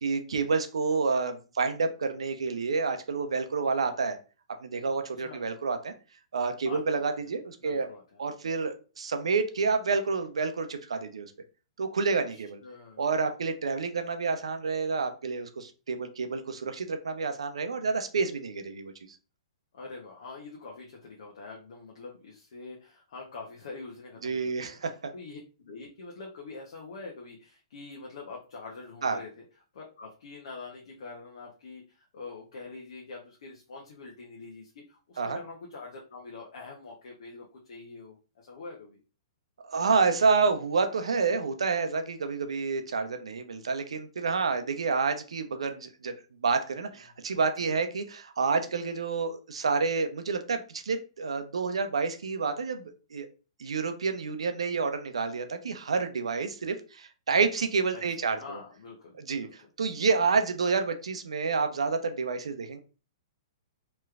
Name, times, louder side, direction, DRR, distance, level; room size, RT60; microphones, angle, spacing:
voice 1, 0.0-4.2 4.6-5.9 6.3-7.9 8.2-11.3 11.8-12.6 13.0-18.9 24.2-25.1 29.0-29.2 35.2-35.4 39.6-46.1 46.4-53.3 53.6-58.6 59.2-62.8, right 4 dB, 85° right, 7 dB, 0.6 m, -29 dB
voice 2, 6.6-7.0 7.6-8.2 12.3-13.0 19.7-24.8 25.1-29.3 29.7-39.0 47.7-47.8 57.9-58.0 58.4-59.7, left 3 dB, 70° left, -1 dB, 0.8 m, -45 dB
3.2 x 3.0 x 2.4 m, 0.35 s
hypercardioid pair, 135°, 3 cm